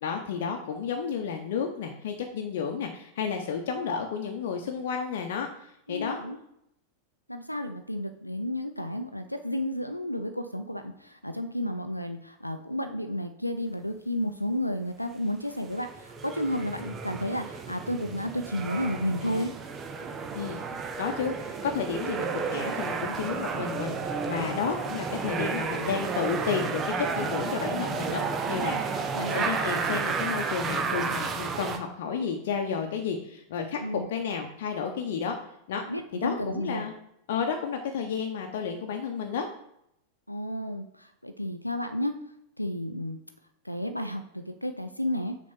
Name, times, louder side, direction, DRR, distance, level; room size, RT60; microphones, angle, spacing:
voice 1, 0.0-6.2 19.2-19.5 20.3-20.6 21.0-35.4 35.7-35.8 36.1-36.9 37.3-39.5, left 6 dB, 55° left, 3 dB, 0.9 m, -32 dB
voice 2, 5.9-6.4 7.3-19.5 24.4-24.6 28.6-28.9 29.1-29.4 33.8-34.1 35.9-36.8 40.3-42.1 42.6-43.2 43.6-45.4, left 1 dB, 90° left, 8 dB, 0.5 m, -32 dB
sound 1, 15.7-31.8, right 5 dB, 25° right, 0.9 m, -32 dB
6.3 x 4.2 x 5.8 m, 0.76 s
figure-of-eight pair, 90°, 0 cm